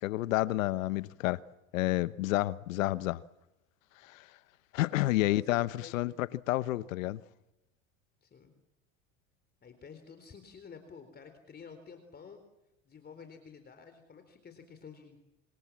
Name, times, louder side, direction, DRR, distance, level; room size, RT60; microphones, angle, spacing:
voice 1, 0.0-1.4 1.7-3.2 4.0-4.3 4.7-7.2, left 17 dB, 90° left, 1.1 m, -30 dB
voice 2, 5.1-6.2 8.2-8.5 9.6-12.4 12.8-15.2, left 6 dB, 25° left, 4.1 m, -51 dB
27.0 x 26.0 x 7.5 m
supercardioid pair, 115°, 38 cm